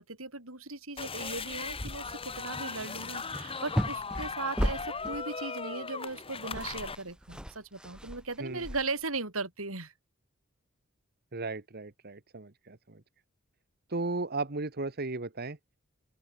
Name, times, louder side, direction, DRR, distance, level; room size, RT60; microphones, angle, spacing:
voice 1, 0.0-9.9, right 3 dB, 85° right, 6.2 m, -38 dB
sound 1, 1.0-7.0, left 4 dB, 25° left, 2.0 m, -38 dB
sound 2, 2.5-2.7 3.0-5.3 6.1-6.2 6.4-9.2, equal, 5° right, 4.1 m, -35 dB
voice 2, 11.3-13.0 13.9-15.6, right 3 dB, 50° right, 1.4 m, -35 dB
open air
head